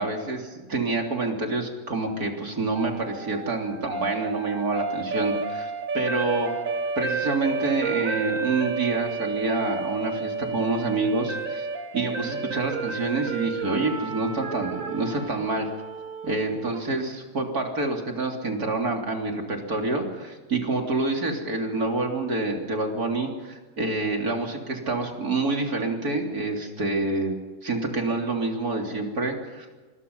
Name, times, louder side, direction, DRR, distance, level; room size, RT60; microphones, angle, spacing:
voice 1, 0.0-6.5 7.0-11.7 11.9-15.7 16.2-27.3 27.6-29.7, right 3 dB, 85° right, 2 dB, 3.9 m, -27 dB
sound 1, 2.8-16.9, right 4 dB, 60° right, 1.9 m, -31 dB
25.5 x 22.0 x 5.6 m, 1.3 s
omnidirectional pair, 1.6 m